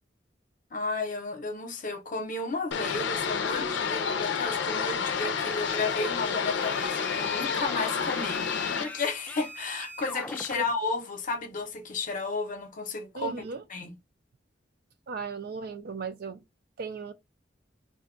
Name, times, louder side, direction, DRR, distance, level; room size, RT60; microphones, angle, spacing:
voice 1, 0.7-13.4 13.7-13.9, left 3 dB, 50° left, 0.7 m, -33 dB
sound 1, 2.7-8.9, left 6 dB, 85° left, 0.5 m, -30 dB
sound 2, 5.4-10.6, left 2 dB, 10° left, 0.4 m, -41 dB
voice 2, 13.1-13.6 15.1-16.4 16.8-17.1, right 4 dB, 60° right, 0.5 m, -36 dB
2.5 x 2.2 x 3.7 m
head